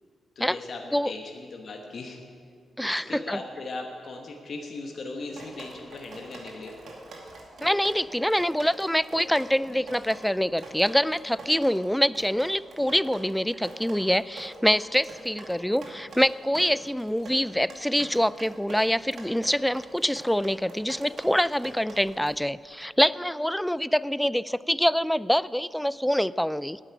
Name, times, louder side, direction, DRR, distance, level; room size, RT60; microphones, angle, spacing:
voice 1, 0.3-2.2 2.8-6.7 9.7-9.9 12.8-12.9, left 3 dB, 60° left, 2 dB, 1.1 m, -38 dB
voice 2, 2.8-3.4 7.6-26.8, equal, 5° left, 18 dB, 0.3 m, -25 dB
Drip, 5.3-22.3, right 2 dB, 70° right, 2.3 m, -44 dB
8.8 x 8.3 x 9.3 m, 2.2 s
supercardioid pair, 45°, 0 cm